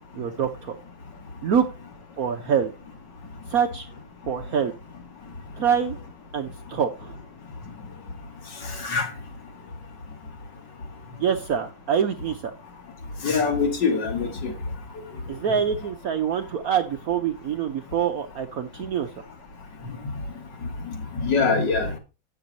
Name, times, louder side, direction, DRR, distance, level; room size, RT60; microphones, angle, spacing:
voice 1, 0.1-0.8 1.4-1.7 2.2-2.7 3.5-3.9 4.3-4.7 5.6-6.0 6.3-7.2 11.2-12.4 15.3-19.1, right 7 dB, 65° right, 0.9 m, -25 dB
voice 2, 8.8-9.1 13.2-14.5 20.9-21.9, left 4 dB, 60° left, 2.4 m, -23 dB
8.9 x 6.9 x 4.0 m
omnidirectional pair, 2.1 m